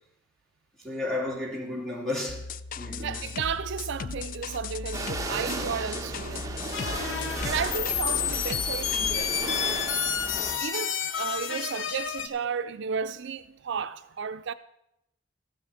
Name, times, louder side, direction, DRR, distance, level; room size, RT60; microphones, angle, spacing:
voice 1, 0.8-2.5 2.8-3.3, left 2 dB, ahead, 2.7 m, -32 dB
sound 1, 2.3-9.1, left 5 dB, 45° left, 0.3 m, -37 dB
voice 2, 3.0-6.5 7.4-9.6 10.4-14.5, right 6 dB, 65° right, 0.4 m, -33 dB
sound 2, 4.9-10.6, right 2 dB, 15° right, 1.0 m, -35 dB
sound 3, 6.7-12.3, left 9 dB, 70° left, 0.7 m, -30 dB
14.0 x 6.1 x 6.3 m
head